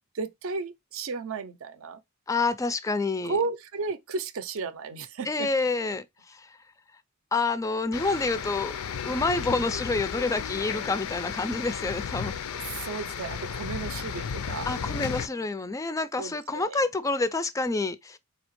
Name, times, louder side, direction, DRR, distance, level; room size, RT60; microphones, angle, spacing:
voice 1, 0.1-2.0 3.2-5.5 12.7-14.7 15.3-15.5 16.2-16.8, right 4 dB, 65° right, 0.5 m, -34 dB
voice 2, 2.3-3.4 5.2-6.6 7.3-8.7 9.1-12.3 14.7-18.2, left 3 dB, 15° left, 0.3 m, -28 dB
sound 1, 7.9-15.3, left 7 dB, 85° left, 0.4 m, -34 dB
4.2 x 2.8 x 3.0 m
head